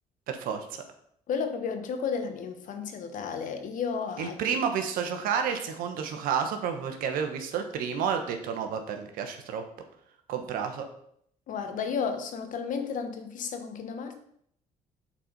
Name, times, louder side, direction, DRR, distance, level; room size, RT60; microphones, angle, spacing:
voice 1, 0.3-0.8 4.2-9.6 10.3-10.9, right 7 dB, 80° right, 5 dB, 1.1 m, -30 dB
voice 2, 1.3-4.4 11.5-14.1, left 6 dB, 65° left, 7 dB, 1.1 m, -32 dB
7.5 x 4.2 x 5.1 m, 0.68 s
supercardioid pair, 80°, 15 cm